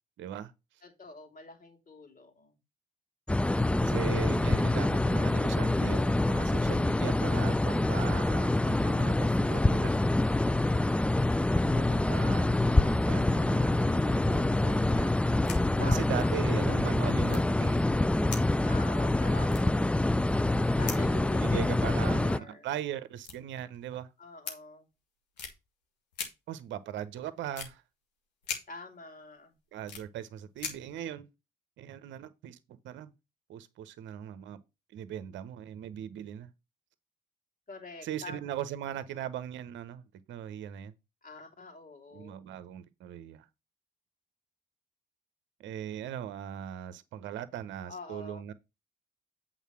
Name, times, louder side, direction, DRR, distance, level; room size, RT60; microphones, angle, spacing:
voice 1, 0.2-0.5 3.8-10.1 11.6-15.1 15.8-17.8 20.8-24.1 26.5-27.8 29.7-31.3 31.8-33.1 33.5-34.6 34.9-36.5 38.0-40.0 40.3-40.9 42.1-43.5 45.6-48.5, right 10 dB, 65° right, 0.8 m, -39 dB
voice 2, 0.8-2.6 15.8-16.4 18.6-20.0 20.8-22.7 24.2-24.9 28.7-29.6 37.7-38.6 41.2-42.5 47.8-48.5, left 3 dB, 40° left, 2.9 m, -46 dB
sound 1, 3.3-22.4, left 2 dB, 5° left, 0.4 m, -26 dB
sound 2, 15.0-15.6 15.9-16.0 16.2-16.3 17.3-17.8 18.3-19.1 19.5-20.6 20.9-21.1 22.3-22.4 23.1-24.0 24.4-24.6 25.3-25.5 26.1-26.3 27.5-27.7 28.4-28.6 29.2-30.0 30.6-31.0, left 6 dB, 85° left, 1.3 m, -40 dB
8.3 x 3.9 x 6.1 m
hypercardioid pair, 40°, 21 cm